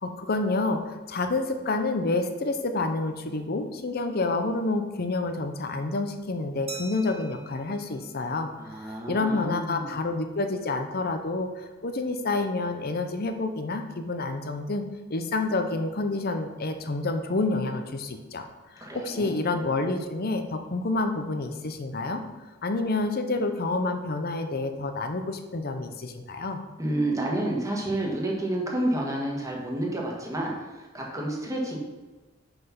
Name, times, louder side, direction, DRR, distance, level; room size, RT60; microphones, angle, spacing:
voice 1, 0.0-14.8 15.1-22.2 22.6-26.6, left 3 dB, 50° left, 7 dB, 0.7 m, -28 dB
Glass, 6.7-9.1, right 2 dB, 30° right, 1.1 m, -45 dB
voice 2, 8.6-9.9 18.8-19.4 26.8-31.8, right 1 dB, 15° right, -2 dB, 1.6 m, -30 dB
5.9 x 5.5 x 5.8 m, 1.2 s
head